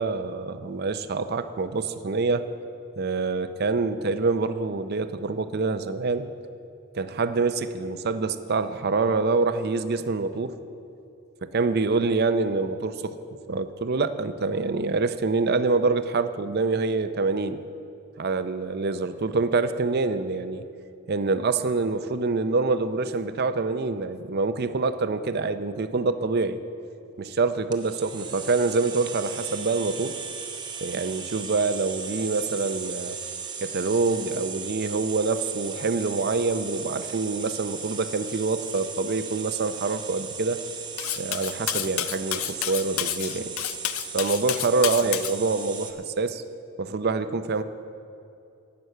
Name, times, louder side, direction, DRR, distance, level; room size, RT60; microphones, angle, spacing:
voice 1, 0.0-2.5 3.0-6.3 6.9-10.6 11.4-13.2 13.5-17.6 18.2-20.6 21.1-26.6 27.2-30.2 30.8-33.2 33.6-40.6 41.2-43.5 44.1-46.4 46.8-47.6, right 3 dB, 45° right, 11 dB, 0.5 m, -26 dB
sound 1, 27.7-45.9, right 6 dB, 20° right, 0.8 m, -37 dB
Cutlery silverware, 41.0-45.3, left 14 dB, 70° left, 0.4 m, -30 dB
11.0 x 9.3 x 6.7 m, 2.6 s
head